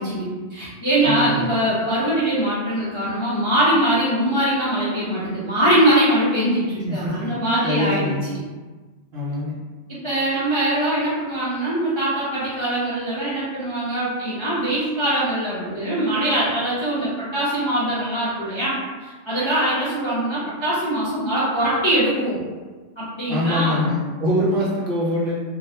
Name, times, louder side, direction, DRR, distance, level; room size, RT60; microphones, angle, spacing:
voice 1, 0.0-8.1 9.9-22.4 23.0-23.8, right 1 dB, 35° left, -11 dB, 0.4 m, -22 dB
voice 2, 1.0-1.4 6.8-7.4 7.6-8.4 9.1-9.6 23.3-25.4, left 1 dB, 60° right, -6 dB, 0.7 m, -24 dB
2.3 x 2.0 x 2.8 m, 1.3 s
omnidirectional pair, 1.2 m